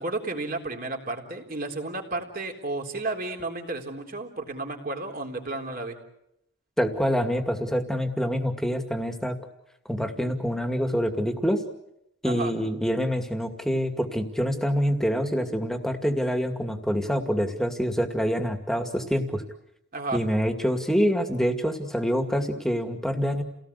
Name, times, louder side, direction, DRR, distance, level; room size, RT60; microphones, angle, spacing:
voice 1, 0.0-6.0 12.2-12.5 19.9-20.2, right 2 dB, 45° right, 2 dB, 3.7 m, -32 dB
voice 2, 6.8-9.4 9.9-11.6 12.2-19.4 20.1-23.4, equal, ahead, 5 dB, 2.2 m, -26 dB
30.0 x 18.0 x 8.3 m, 0.82 s
head